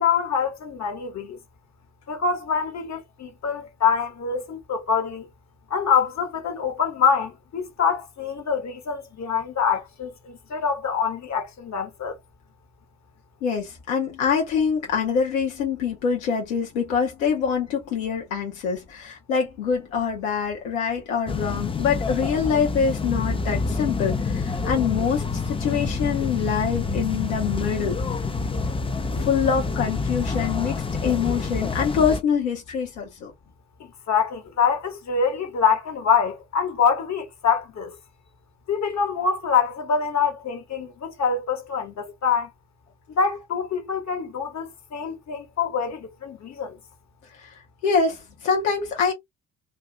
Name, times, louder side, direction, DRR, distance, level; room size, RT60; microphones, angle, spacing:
voice 1, 0.0-1.4 2.1-5.3 5.7-12.2 33.8-38.0 38.7-42.5 43.2-46.8, left 6 dB, 40° left, 1.1 m, -25 dB
voice 2, 13.4-28.0 29.1-30.8 31.0-33.3 47.4-47.5 47.8-49.1, left 6 dB, 85° left, 0.8 m, -25 dB
sound 1, 21.3-32.2, left 4 dB, 15° left, 0.4 m, -27 dB
2.4 x 2.1 x 3.7 m
hypercardioid pair, 50°, 40 cm